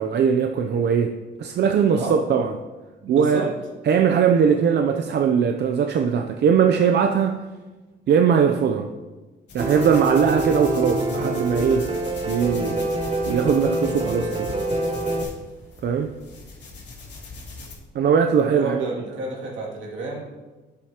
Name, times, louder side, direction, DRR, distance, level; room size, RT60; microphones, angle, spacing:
voice 1, 0.0-2.5 3.1-3.5 3.8-7.4 8.1-8.9 9.5-11.9 12.2-12.8 13.3-14.5 15.8-16.1 17.9-18.9, right 7 dB, 60° right, 5 dB, 0.6 m, -20 dB
voice 2, 3.0-3.5 18.5-20.2, right 3 dB, 75° right, -3 dB, 2.5 m, -30 dB
sound 1, 9.5-17.7, left 3 dB, 60° left, 2.8 m, -39 dB
Piano, 9.6-15.2, right 2 dB, 30° right, 1.1 m, -26 dB
11.0 x 7.7 x 2.9 m, 1.2 s
cardioid pair, 90°, 20 cm